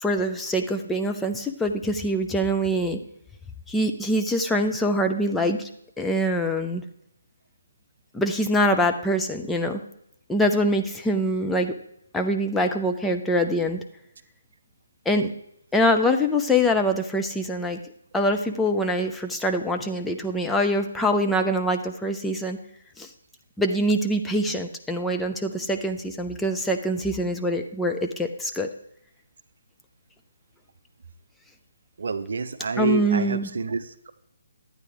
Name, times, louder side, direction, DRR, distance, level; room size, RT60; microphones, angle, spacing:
voice 1, 0.0-3.0 3.7-5.7 6.0-6.8 8.1-9.8 10.3-11.8 12.1-13.8 15.1-15.3 15.7-17.8 18.1-22.6 23.0-23.1 23.6-28.7 32.8-33.5, equal, 5° left, 4 dB, 0.6 m, -24 dB
voice 2, 32.0-34.1, right 4 dB, 60° right, 11 dB, 0.7 m, -28 dB
12.5 x 8.9 x 3.4 m, 0.75 s
figure-of-eight pair, 140°, 0 cm